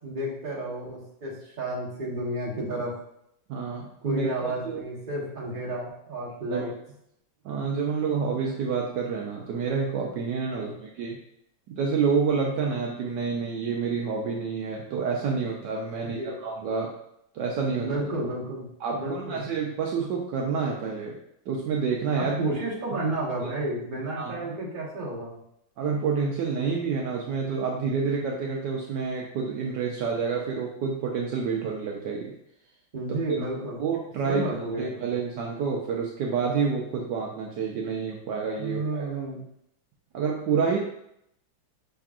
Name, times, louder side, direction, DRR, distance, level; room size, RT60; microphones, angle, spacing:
voice 1, 0.0-2.9 4.0-6.7 10.5-10.7 16.2-16.3 17.7-19.4 22.2-25.4 32.9-33.8 34.2-35.1 38.6-39.4, right 1 dB, 30° right, -5 dB, 1.2 m, -32 dB
voice 2, 3.5-4.8 6.5-6.7 7.4-11.2 11.7-16.9 17.3-17.9 18.8-21.1 21.5-22.6 24.2-24.4 25.8-32.3 33.3-33.5 33.8-34.5 34.8-39.1 40.1-40.8, right 5 dB, 70° right, -1 dB, 1.2 m, -28 dB
5.7 x 3.5 x 2.4 m, 0.76 s
omnidirectional pair, 2.1 m